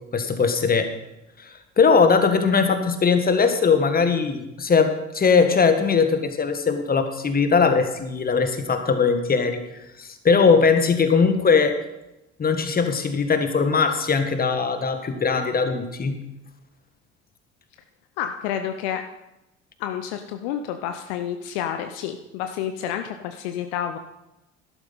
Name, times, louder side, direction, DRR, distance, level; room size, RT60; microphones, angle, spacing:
voice 1, 0.1-0.9 1.4-9.6 10.0-11.8 12.4-16.2, left 5 dB, 25° left, 8 dB, 1.5 m, -20 dB
voice 2, 18.2-19.0 19.8-24.0, left 9 dB, 60° left, 7 dB, 0.8 m, -29 dB
12.5 x 12.0 x 4.0 m, 0.92 s
figure-of-eight pair, 60°, 36 cm